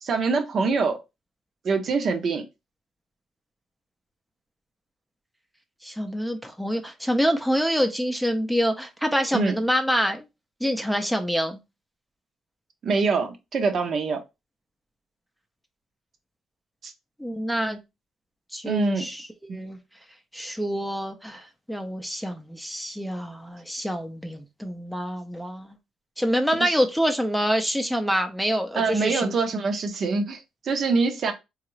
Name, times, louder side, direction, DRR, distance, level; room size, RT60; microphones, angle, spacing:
voice 1, 0.0-1.0 1.6-2.4 9.3-9.5 12.8-14.2 16.8-16.9 18.6-19.1 19.5-19.6 26.6-26.8 28.7-31.3, right 4 dB, 55° right, 0.8 m, -24 dB
voice 2, 5.8-10.2 10.6-11.6 17.2-17.8 18.5-19.8 20.3-25.8 26.2-29.4, equal, ahead, 0.6 m, -26 dB
3.7 x 2.4 x 3.1 m
cardioid pair, 90°, 0 cm